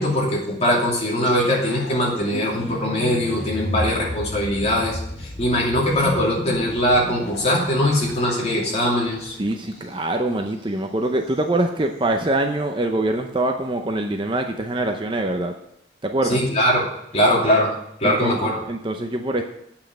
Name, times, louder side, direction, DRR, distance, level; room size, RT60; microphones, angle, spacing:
voice 1, 0.0-9.3 16.3-16.8 17.1-17.7 18.0-18.6, equal, 35° left, -3 dB, 2.7 m, -21 dB
sound 1, 1.2-10.2 10.5-10.7 11.0-11.4, left 1 dB, 70° left, 5.0 m, -33 dB
voice 2, 9.4-15.5 16.0-16.4 18.0-19.4, right 1 dB, 25° right, 4 dB, 0.7 m, -24 dB
8.7 x 5.8 x 7.9 m, 0.77 s
head